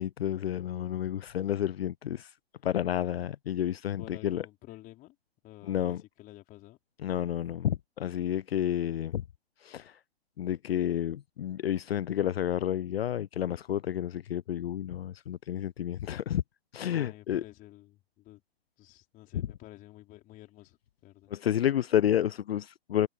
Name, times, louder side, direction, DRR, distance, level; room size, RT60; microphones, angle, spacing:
voice 1, 0.0-2.3 2.6-4.4 5.7-6.0 7.0-9.2 9.6-10.0 10.4-16.4 16.7-17.4 19.3-19.5 21.3-23.1, left 10 dB, 70° left, 0.4 m, -30 dB
voice 2, 4.0-5.1 5.4-6.8 16.8-18.4 18.8-21.3, left 17 dB, 25° left, 4.6 m, -51 dB
figure-of-eight pair, 115°, 31 cm